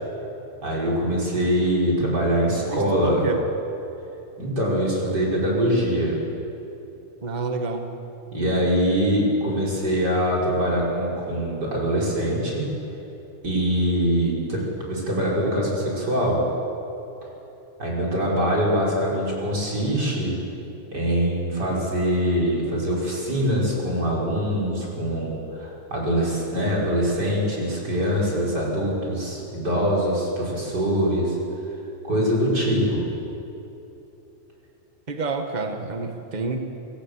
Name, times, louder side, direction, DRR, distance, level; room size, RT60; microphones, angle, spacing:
voice 1, 0.6-3.2 4.4-6.2 8.3-12.7 13.4-16.4 17.8-20.4 20.9-31.4 32.0-33.1, equal, 30° right, -4 dB, 6.5 m, -23 dB
voice 2, 2.7-3.4 7.2-7.9 35.1-36.6, right 3 dB, 75° right, 5 dB, 0.4 m, -29 dB
26.5 x 17.0 x 8.4 m, 2.9 s
omnidirectional pair, 3.6 m